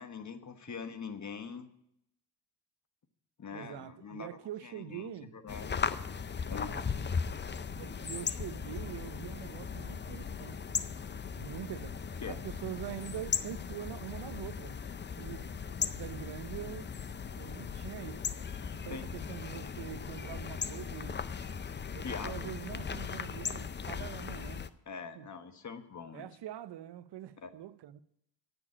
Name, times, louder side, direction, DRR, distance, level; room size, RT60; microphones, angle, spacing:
voice 1, 0.0-1.7 3.4-5.7 6.5-6.8 12.2-12.4 18.9-19.2 22.0-22.5 24.9-26.2 27.4-27.5, left 5 dB, 45° left, 1.3 m, -43 dB
voice 2, 3.5-5.4 6.4-6.9 7.7-10.8 11.4-12.0 12.3-14.8 15.2-16.9 17.4-18.2 18.7-21.2 21.9-24.7 25.1-25.3 26.1-28.0, right 12 dB, 75° right, 0.7 m, -44 dB
sound 1, 5.5-24.7, left 6 dB, 25° left, 0.5 m, -38 dB
9.8 x 7.0 x 8.6 m
cardioid pair, 80°, 41 cm